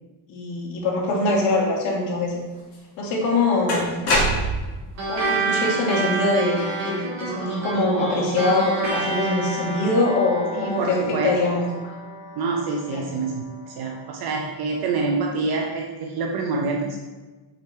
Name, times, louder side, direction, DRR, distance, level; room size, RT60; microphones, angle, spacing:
voice 1, 0.3-2.3 3.0-3.9 5.1-6.6 6.8-11.6 12.9-13.1, left 2 dB, 80° left, -3 dB, 2.2 m, -23 dB
sound 1, 2.7-2.8 3.7-4.8, equal, 30° left, 2.1 m, -22 dB
sound 2, 5.0-13.8, right 2 dB, 35° right, 2.1 m, -29 dB
voice 2, 10.6-11.3 12.4-17.0, right 3 dB, 50° right, 1 dB, 0.8 m, -26 dB
5.8 x 5.3 x 4.5 m, 1.2 s
cardioid pair, 175°, 47 cm